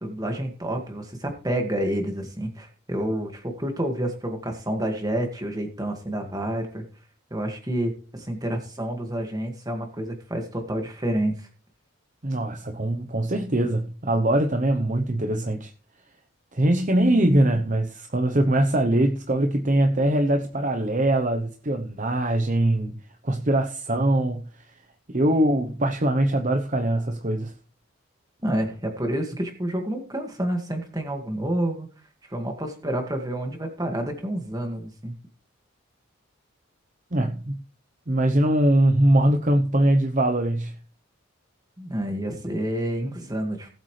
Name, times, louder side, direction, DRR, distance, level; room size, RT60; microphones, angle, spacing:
voice 1, 0.0-6.8 7.3-11.5 28.4-31.9 32.3-35.1 41.8-43.7, right 1 dB, 15° right, 2.0 m, -29 dB
voice 2, 12.2-15.7 16.5-23.0 23.2-24.5 25.1-27.5 37.1-37.6 38.1-40.8, right 1 dB, 35° right, 0.9 m, -22 dB
18.5 x 8.2 x 3.3 m
head